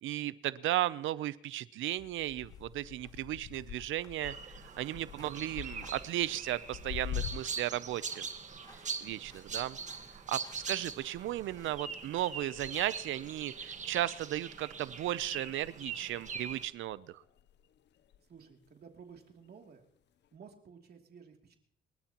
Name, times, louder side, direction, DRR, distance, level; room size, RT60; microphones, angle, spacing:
voice 1, 0.0-8.3 9.0-9.8 10.1-17.2, right 14 dB, 80° right, 17 dB, 0.6 m, -35 dB
sound 1, 1.8-13.0, left 2 dB, 20° left, 3.5 m, -63 dB
sound 2, 2.0-7.8 8.1-15.2 15.4-16.2 16.9-18.7 19.1-19.5 20.2-20.3, left 11 dB, 60° left, 0.6 m, -47 dB
sound 3, 4.2-16.7, right 5 dB, 35° right, 1.5 m, -42 dB
voice 2, 18.2-19.9 20.3-21.6, right 6 dB, 55° right, 2 dB, 2.8 m, -54 dB
27.0 x 13.0 x 3.0 m, 0.63 s
cardioid pair, 90°, 20 cm